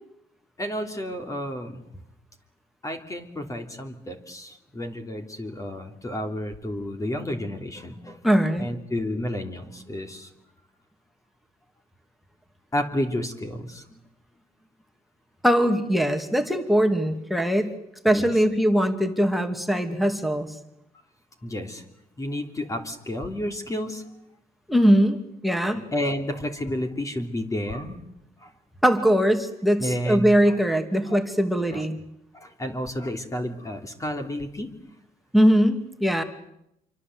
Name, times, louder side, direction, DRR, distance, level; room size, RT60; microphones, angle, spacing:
voice 1, 0.6-1.8 2.8-8.2 8.6-10.3 12.7-13.8 18.1-18.3 21.4-21.8 22.2-24.0 25.9-28.0 28.4-28.5 29.8-30.5 31.1-31.2 31.6-31.8 32.3-34.7, left 1 dB, 20° left, 5 dB, 3.2 m, -31 dB
voice 2, 8.2-8.7 15.4-17.7 18.0-20.5 24.7-25.8 28.8-32.0 35.3-36.2, equal, ahead, 8 dB, 2.6 m, -21 dB
27.5 x 24.0 x 8.1 m, 0.80 s
cardioid pair, 110°, 17 cm